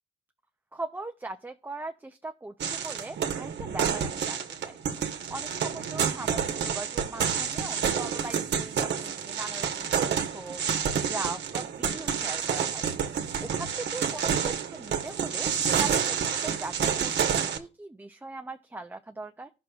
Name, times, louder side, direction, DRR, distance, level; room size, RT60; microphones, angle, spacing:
voice 1, 0.7-4.8 5.3-10.6 11.0-12.8 13.4-19.5, right 3 dB, 10° right, 5 dB, 0.5 m, -40 dB
sound 1, 2.6-17.6, right 7 dB, 60° right, 1.1 m, -29 dB
15.5 x 6.2 x 2.3 m, 0.32 s
cardioid pair, 90°, 20 cm